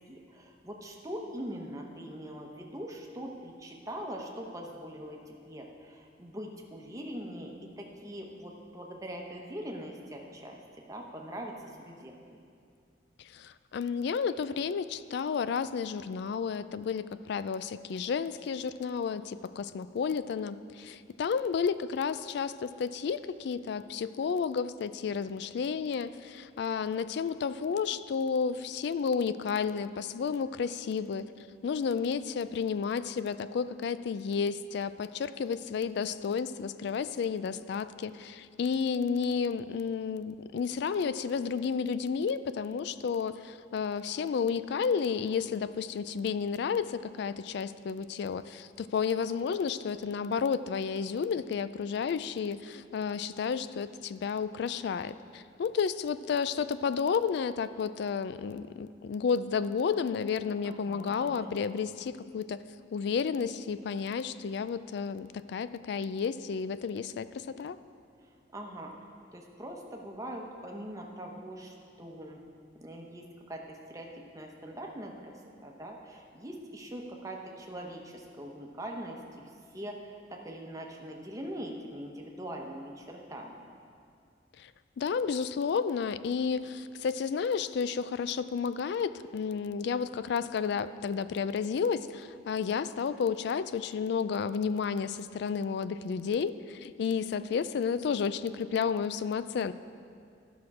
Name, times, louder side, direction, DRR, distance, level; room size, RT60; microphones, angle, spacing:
voice 1, 0.1-7.5 7.8-10.6 10.9-12.1 60.6-61.6 68.5-68.9 69.3-72.4 72.8-75.3 75.6-79.2 79.7-83.6, equal, 20° right, 0 dB, 0.9 m, -42 dB
voice 2, 13.3-31.3 31.6-62.6 62.9-67.8 84.6-84.7 85.0-99.7, left 6 dB, 60° left, 14 dB, 0.3 m, -31 dB
12.5 x 6.0 x 4.8 m, 2.3 s
head